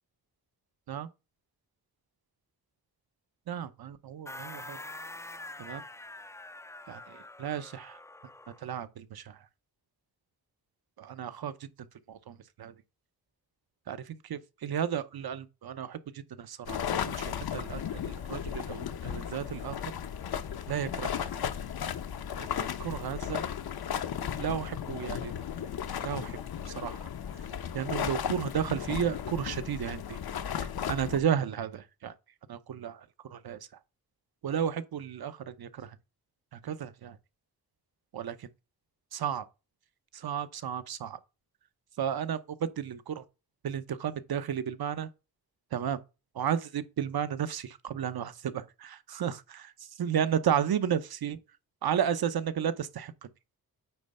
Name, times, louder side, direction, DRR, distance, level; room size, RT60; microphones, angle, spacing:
voice 1, 3.5-4.8 5.6-5.8 6.9-8.0 8.6-9.4 11.0-11.7 12.1-12.7 13.9-19.8 20.7-21.1 22.4-23.4 24.4-25.3 26.0-26.4 26.7-27.1 27.7-30.2 30.9-32.1 32.5-33.6 34.4-36.0 36.5-37.2 38.1-38.5 39.1-39.4 40.1-41.2 42.0-43.2 43.6-45.1 45.7-46.0 46.3-51.4 51.8-53.1, right 8 dB, 75° right, 0.9 m, -33 dB
sound 1, 4.3-8.7, left 2 dB, 10° left, 0.3 m, -45 dB
sound 2, 16.7-31.2, left 8 dB, 75° left, 0.8 m, -35 dB
9.1 x 3.2 x 5.4 m
wide cardioid pair, 110°, 38 cm